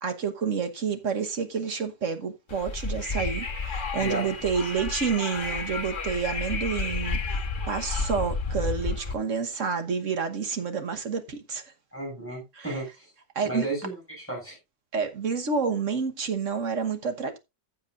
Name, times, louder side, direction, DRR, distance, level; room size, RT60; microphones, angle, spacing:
voice 1, 0.0-11.6 12.6-12.8 13.3-13.7 14.9-17.4, right 6 dB, 50° right, 1.4 m, -29 dB
Wind, 2.5-9.1, left 3 dB, 35° left, 1.3 m, -31 dB
voice 2, 11.9-13.1 13.5-14.6, right 2 dB, 5° left, 7.1 m, -33 dB
15.0 x 7.3 x 2.5 m
omnidirectional pair, 1.8 m